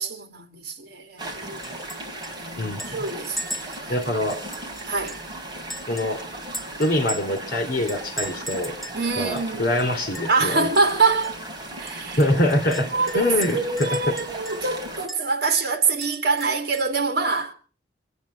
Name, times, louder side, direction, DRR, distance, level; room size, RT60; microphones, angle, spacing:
voice 1, 0.0-1.6 2.4-4.1 4.9-5.2 8.9-9.7 10.3-11.4 11.8-12.2 12.8-17.5, right 4 dB, 60° right, 2.4 m, -25 dB
sound 1, 1.2-15.1, right 1 dB, 25° right, 3.3 m, -37 dB
Chink clink, 1.6-2.0 2.2-2.3 2.8-5.3 5.7-7.4 7.9-9.0 9.4-9.5 9.8-10.4 10.7-10.9 11.2-11.3 11.9-14.7 15.1-15.2 15.6-17.0, right 1 dB, ahead, 2.5 m, -37 dB
voice 2, 3.9-4.5 5.9-6.3 6.8-8.8 9.2-10.7 12.2-12.9 13.1-14.1, left 1 dB, 50° left, 3.2 m, -24 dB
26.5 x 9.4 x 5.8 m
head